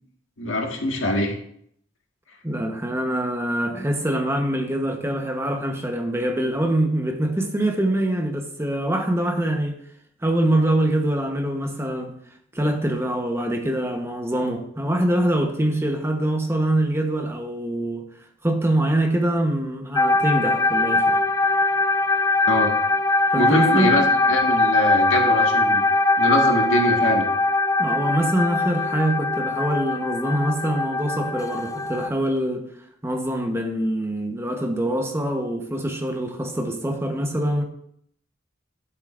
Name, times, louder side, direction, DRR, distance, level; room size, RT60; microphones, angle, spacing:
voice 1, 0.4-1.3 22.5-22.7 23.3-25.8 26.2-27.3, left 1 dB, 85° left, 1 dB, 1.8 m, -23 dB
voice 2, 2.4-9.8 10.2-12.2 12.5-18.0 18.4-21.2 23.3-23.9 27.8-32.6 33.0-37.6, right 1 dB, 15° right, 3 dB, 1.0 m, -24 dB
sound 1, 19.9-32.1, left 2 dB, 15° left, 0.3 m, -21 dB
12.5 x 7.8 x 2.6 m, 0.68 s
head